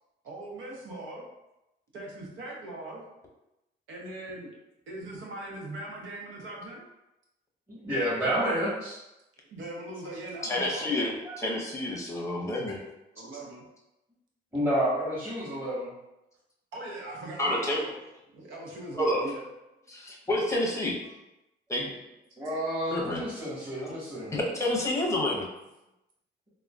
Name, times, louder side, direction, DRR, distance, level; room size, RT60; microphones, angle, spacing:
voice 1, 0.2-1.2 1.9-3.0 3.9-4.5 4.9-6.8 9.5-10.9 13.1-13.6 16.7-17.9 18.3-19.4, right 2 dB, 75° right, -3 dB, 0.8 m, -40 dB
voice 2, 7.7-9.0 11.2-11.4 14.5-15.9 22.4-24.3, equal, 10° right, -13 dB, 1.4 m, -29 dB
voice 3, 10.4-12.8 17.4-17.8 19.0-19.2 19.9-21.0 21.7-21.9 22.9-23.2 24.3-25.5, left 1 dB, 15° left, -2 dB, 0.8 m, -29 dB
3.6 x 2.2 x 2.3 m, 0.93 s
cardioid pair, 90°, 20 cm